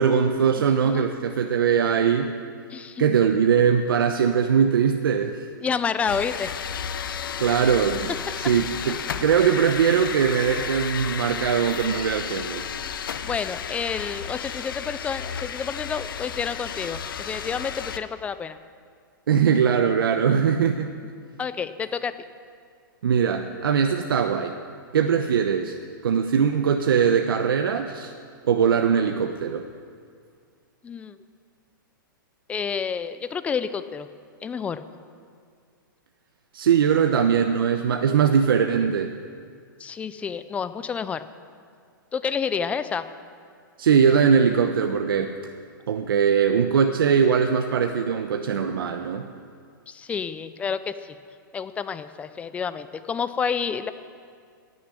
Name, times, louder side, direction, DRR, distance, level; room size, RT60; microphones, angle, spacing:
voice 1, 0.0-2.3 3.0-5.4 7.4-12.6 19.3-20.9 23.0-24.5 24.9-25.8 26.0-28.1 28.4-29.7 36.5-39.1 43.8-45.4 45.9-49.3, right 7 dB, 80° right, 5 dB, 0.9 m, -21 dB
voice 2, 2.7-3.0 5.6-6.5 13.2-18.6 21.4-22.1 30.8-31.2 32.5-34.1 34.4-34.8 39.8-41.3 42.1-43.1 49.9-51.2 51.5-53.9, left 6 dB, 10° left, 12 dB, 0.5 m, -29 dB
sound 1, 6.1-18.0, left 8 dB, 75° left, 0.9 m, -33 dB
16.0 x 6.8 x 9.6 m, 2.1 s
hypercardioid pair, 150°, 12 cm